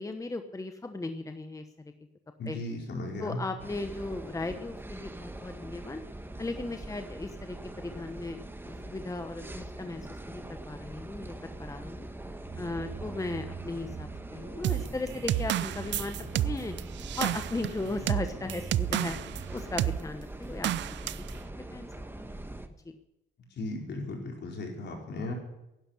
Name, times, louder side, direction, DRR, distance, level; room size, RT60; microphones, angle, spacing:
voice 1, 0.0-1.6 2.5-2.6 3.2-6.0 6.4-12.1 12.6-16.7 17.1-19.2 19.5-21.3 21.5-21.9 22.2-22.4, left 2 dB, 15° left, 7 dB, 1.1 m, -37 dB
voice 2, 2.4-3.4 23.5-25.3, left 2 dB, 60° left, 1 dB, 4.8 m, -36 dB
sound 1, 3.6-22.7, right 1 dB, 10° right, 1.3 m, -43 dB
sound 2, 12.5-19.8, right 5 dB, 35° right, 5.3 m, -45 dB
sound 3, 14.6-19.4 19.8-20.0 20.6-21.3, right 13 dB, 65° right, 0.5 m, -30 dB
11.5 x 11.0 x 9.8 m, 0.92 s
cardioid pair, 90°, 20 cm